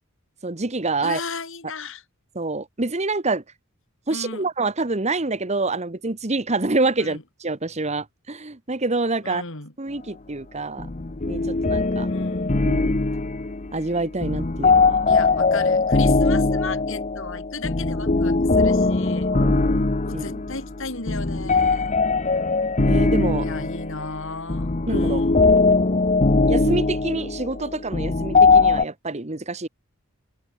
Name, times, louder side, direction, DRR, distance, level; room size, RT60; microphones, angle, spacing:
voice 1, 0.4-1.2 2.3-3.4 4.1-9.4 9.8-10.9 11.3-12.1 12.6-13.0 13.7-15.2 19.3-19.5 20.1-20.3 22.8-23.5 24.9-25.2 26.5-29.7, right 3 dB, 30° right, 1.3 m, -26 dB
voice 2, 1.0-2.0 4.1-4.5 7.0-7.2 9.2-9.7 12.1-12.6 15.1-19.3 20.0-21.9 23.4-25.5, left 3 dB, 60° left, 4.4 m, -35 dB
sound 1, 10.8-28.8, left 3 dB, 35° left, 0.9 m, -21 dB
open air
head